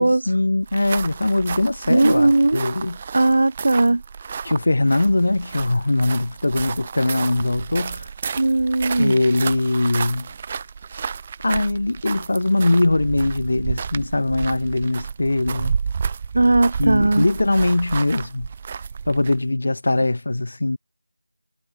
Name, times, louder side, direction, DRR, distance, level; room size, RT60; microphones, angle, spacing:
voice 1, 0.0-3.0 4.4-8.1 9.0-10.3 11.4-15.7 16.8-18.5 19.0-20.8, left 2 dB, 55° left, 7.0 m, -21 dB
sound 1, 0.6-19.5, right 6 dB, 20° right, 3.0 m, -31 dB
voice 2, 1.9-2.7 3.1-4.0 8.4-9.1 16.3-17.2, right 2 dB, 55° right, 4.6 m, -18 dB
figure-of-eight pair, 170°, 0 cm